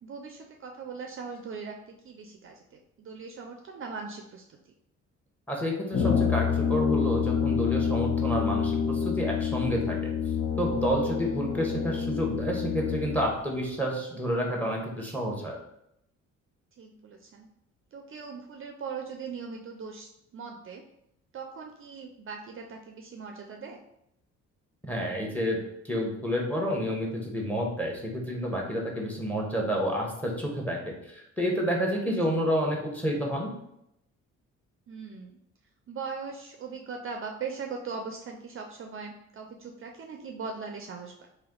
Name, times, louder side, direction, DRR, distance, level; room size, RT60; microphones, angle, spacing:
voice 1, 0.0-4.6 11.2-11.5 16.8-17.5 17.9-20.8 21.3-23.8 34.9-35.4 35.9-41.3, right 5 dB, 45° right, 3 dB, 0.4 m, -40 dB
voice 2, 5.5-10.1 10.6-15.5 24.9-25.6 25.8-33.5, equal, 5° left, -1 dB, 1.1 m, -29 dB
Brass instrument, 5.9-13.4, left 7 dB, 50° left, 0.5 m, -27 dB
3.2 x 2.7 x 3.8 m, 0.79 s
cardioid pair, 90°, 30 cm